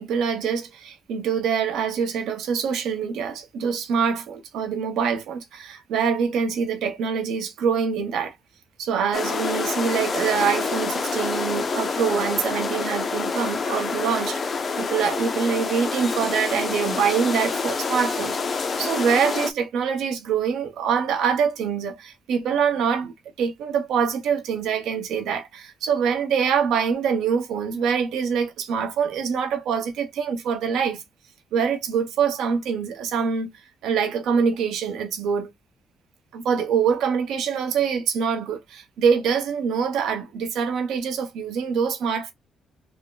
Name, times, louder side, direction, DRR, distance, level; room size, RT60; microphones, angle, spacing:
voice 1, 0.0-8.3 8.8-31.0 31.5-33.5 33.8-35.5 36.3-42.3, right 6 dB, 80° right, 0.9 m, -25 dB
sound 1, 9.1-19.5, left 4 dB, 40° left, 0.6 m, -27 dB
3.4 x 2.2 x 3.8 m
cardioid pair, 90°, 0 cm